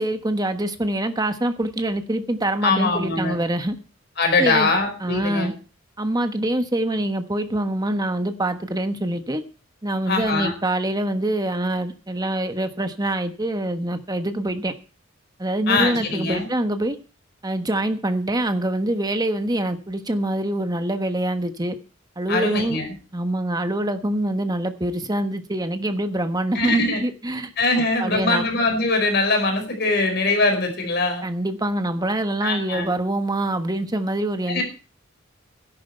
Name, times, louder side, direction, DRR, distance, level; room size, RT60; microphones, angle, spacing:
voice 1, 0.0-3.8 4.4-4.7 5.0-5.5 6.0-9.4 9.8-14.7 15.4-17.0 17.4-21.8 22.2-22.8 23.1-27.5 27.8-28.5 31.2-34.6, right 1 dB, 20° right, 8 dB, 1.3 m, -25 dB
voice 2, 2.6-3.4 4.2-5.5 10.1-10.5 15.7-16.5 22.3-22.9 26.5-27.0 27.6-31.2 32.4-32.9 34.5-34.6, left 3 dB, 55° left, 4 dB, 4.8 m, -22 dB
13.5 x 11.0 x 4.5 m, 0.35 s
head